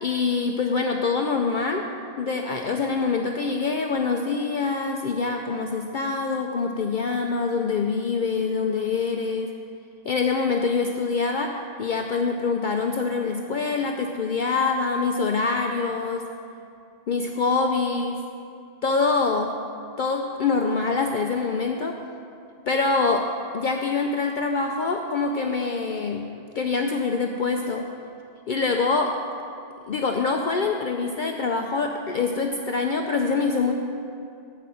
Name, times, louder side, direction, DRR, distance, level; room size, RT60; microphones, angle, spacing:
voice 1, 0.0-1.8 2.2-9.5 10.0-16.2 17.1-18.2 18.8-19.5 20.0-22.0 22.7-23.3 23.5-26.3 26.5-27.9 28.5-29.1 29.9-33.7, left 4 dB, 55° left, 3 dB, 0.6 m, -25 dB
8.2 x 5.8 x 7.5 m, 2.5 s
omnidirectional pair, 1.1 m